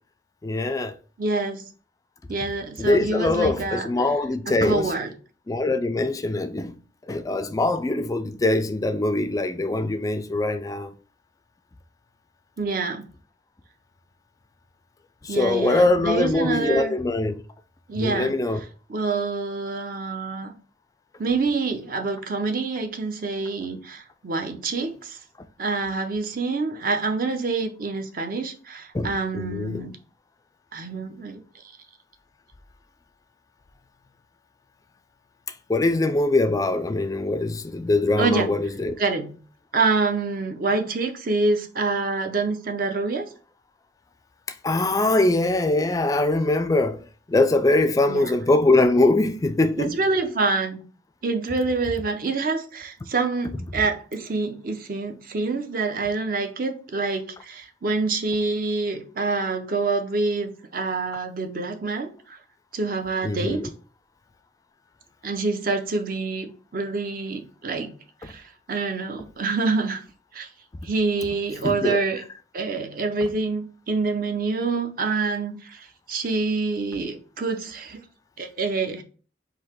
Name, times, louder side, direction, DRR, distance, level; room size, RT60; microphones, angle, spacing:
voice 1, 0.4-0.9 2.8-4.9 5.5-6.8 7.1-10.9 15.2-17.4 17.9-18.6 28.9-29.8 35.7-38.9 44.6-47.0 47.3-50.0 63.2-63.7 71.6-72.0, left 2 dB, 20° left, 0.3 m, -22 dB
voice 2, 1.2-1.6 2.3-4.1 4.5-5.1 12.6-13.1 15.3-16.9 17.9-20.5 21.2-25.2 25.6-29.9 30.7-31.4 38.2-38.5 39.0-39.4 39.7-43.2 48.1-48.3 49.8-50.8 51.2-62.4 62.7-63.6 65.2-67.9 68.2-70.0 70.3-70.5 70.8-72.2 72.5-78.0 78.4-79.0, right 3 dB, 50° right, 0.6 m, -26 dB
3.9 x 2.7 x 4.4 m
head